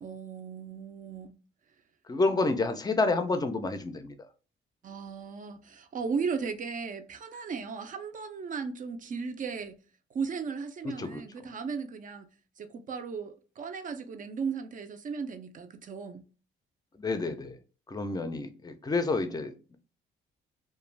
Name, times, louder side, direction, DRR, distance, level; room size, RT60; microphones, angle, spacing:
voice 1, 0.0-1.3 4.8-9.8 10.1-12.3 12.6-16.3, right 5 dB, 40° right, 0.4 m, -36 dB
voice 2, 2.1-4.2 10.8-11.2 16.9-17.6 17.9-19.8, left 3 dB, 20° left, 0.4 m, -29 dB
2.4 x 2.2 x 3.1 m
cardioid pair, 90°, 20 cm